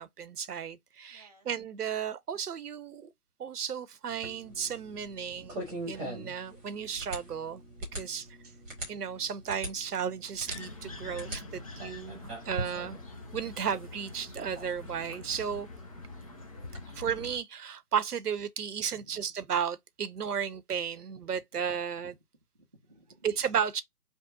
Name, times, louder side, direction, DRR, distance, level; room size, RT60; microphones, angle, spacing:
voice 1, 0.0-3.1 3.4-7.6 7.9-8.3 8.9-13.0 13.3-15.7 16.9-22.2 23.2-23.8, right 7 dB, 80° right, 0.8 m, -34 dB
voice 2, 1.1-1.6 8.2-8.6 11.2-12.5 19.0-19.1 21.5-21.6 22.5-23.3, right 2 dB, 30° right, 0.4 m, -62 dB
sound 1, 4.1-16.8, right 1 dB, 10° right, 0.9 m, -43 dB
sound 2, 10.5-17.4, left 2 dB, 25° left, 0.5 m, -45 dB
5.3 x 2.0 x 3.9 m
hypercardioid pair, 155°, 46 cm